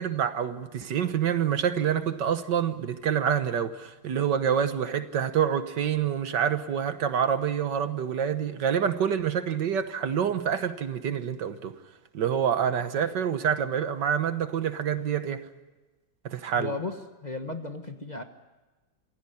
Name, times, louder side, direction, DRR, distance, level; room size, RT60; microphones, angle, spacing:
voice 1, 0.0-11.7 12.1-15.4 16.3-16.7, right 8 dB, 70° right, 10 dB, 1.7 m, -27 dB
voice 2, 16.5-17.0 17.2-18.2, left 3 dB, 25° left, 6 dB, 1.3 m, -34 dB
27.5 x 16.5 x 9.8 m, 1.2 s
omnidirectional pair, 2.0 m